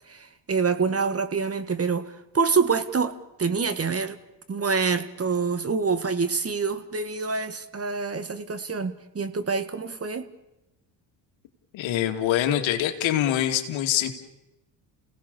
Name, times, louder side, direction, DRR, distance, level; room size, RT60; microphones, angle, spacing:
voice 1, 0.1-4.2 4.5-10.3, right 5 dB, 30° right, 12 dB, 1.8 m, -26 dB
voice 2, 11.7-14.1, left 11 dB, 65° left, 6 dB, 2.6 m, -24 dB
29.5 x 17.5 x 7.0 m, 0.97 s
hypercardioid pair, 70°, 49 cm